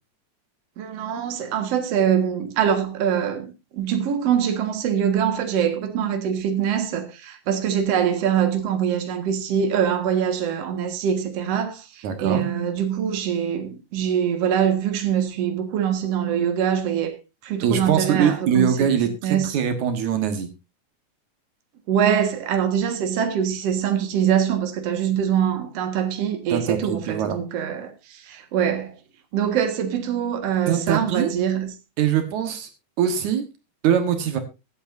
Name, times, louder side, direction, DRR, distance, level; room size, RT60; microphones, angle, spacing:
voice 1, 0.8-17.2 17.4-18.9 19.2-19.5 21.9-28.9 29.3-31.7, right 8 dB, 60° right, 2.6 m, -23 dB
voice 2, 12.0-12.4 17.6-20.5 26.5-27.4 30.7-31.3 32.0-32.7 33.0-33.4 33.8-34.4, right 8 dB, 80° right, 2.8 m, -22 dB
23.5 x 8.3 x 2.6 m
omnidirectional pair, 3.3 m